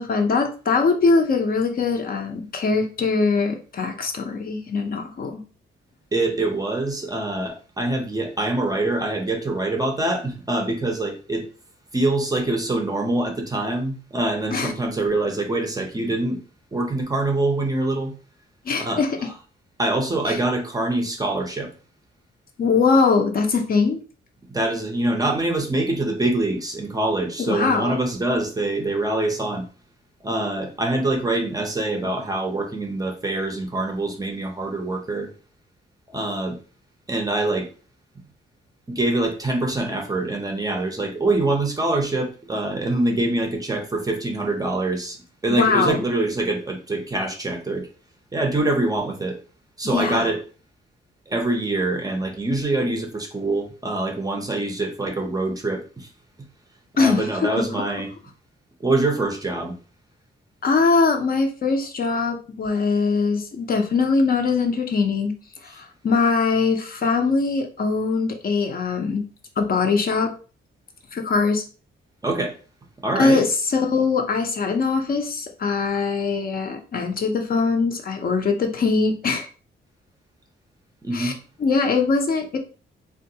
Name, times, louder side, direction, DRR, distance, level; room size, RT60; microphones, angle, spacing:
voice 1, 0.0-5.4 14.5-14.7 18.7-19.2 20.3-20.4 22.6-24.0 27.4-27.9 45.5-46.0 49.9-50.3 57.0-57.6 60.6-65.3 65.6-69.2 69.6-70.3 71.1-71.6 73.2-79.5 81.1-81.3 81.6-82.6, left 4 dB, 45° left, 4 dB, 0.5 m, -22 dB
voice 2, 6.1-11.5 11.9-16.4 16.7-18.1 18.8-19.0 19.8-21.7 24.5-29.6 30.2-35.3 36.1-36.6 37.1-37.7 38.9-45.2 45.4-47.9 48.3-49.4 49.8-50.4 51.3-56.1 57.0-58.1 58.8-59.8 72.2-72.6 73.0-73.4 81.0-81.4, right 2 dB, 15° right, 2 dB, 0.5 m, -24 dB
3.7 x 2.3 x 2.7 m, 0.36 s
wide cardioid pair, 165°, 21 cm